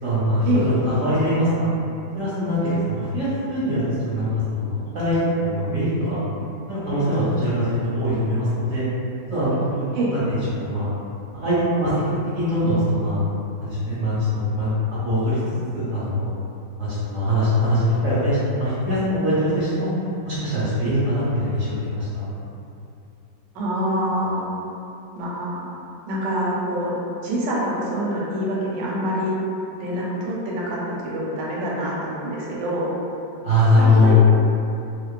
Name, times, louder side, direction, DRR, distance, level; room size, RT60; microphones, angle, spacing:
voice 1, 0.0-1.7 2.1-6.2 6.7-8.8 9.3-10.9 11.3-12.0 12.3-13.2 13.6-15.4 15.7-16.3 16.8-19.9 20.2-22.4 33.4-34.2, left 1 dB, 65° right, -11 dB, 0.8 m, -22 dB
voice 2, 23.5-24.5 25.1-25.6 26.1-29.3 29.8-32.9 33.8-34.2, right 1 dB, 85° right, -5 dB, 1.2 m, -26 dB
2.9 x 2.0 x 2.3 m, 2.7 s
omnidirectional pair, 1.9 m